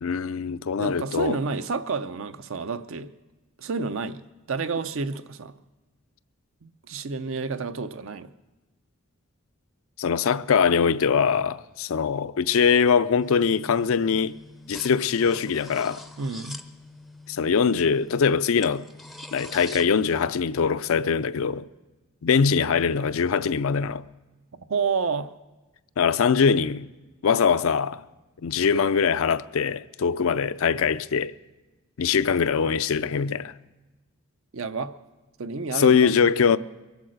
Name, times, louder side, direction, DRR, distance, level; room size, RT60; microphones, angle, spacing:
voice 1, 0.0-1.4 10.0-14.4 14.7-16.0 17.3-18.9 19.3-21.7 22.2-24.0 26.0-26.9 27.2-28.0 28.4-31.3 32.0-33.5 35.7-36.6, left 6 dB, 70° left, 0.4 m, -22 dB
voice 2, 0.8-3.1 3.6-4.2 4.5-5.5 6.6-8.3 16.2-16.6 24.5-25.3 34.5-34.9 35.4-36.1, right 4 dB, 65° right, 0.6 m, -30 dB
sound 1, 13.2-19.8, left 1 dB, ahead, 0.5 m, -44 dB
23.0 x 8.2 x 6.4 m
head